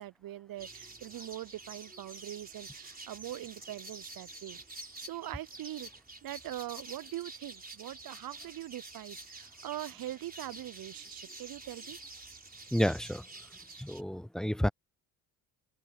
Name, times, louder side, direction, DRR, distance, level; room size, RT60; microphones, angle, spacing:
voice 1, 0.0-5.9 6.2-12.0, right 14 dB, 45° right, 0.8 m, -42 dB
sound 1, 0.6-14.0, right 2 dB, 20° right, 4.3 m, -48 dB
voice 2, 12.7-13.3 13.8-14.7, equal, ahead, 0.4 m, -30 dB
hypercardioid pair, 55°, 47 cm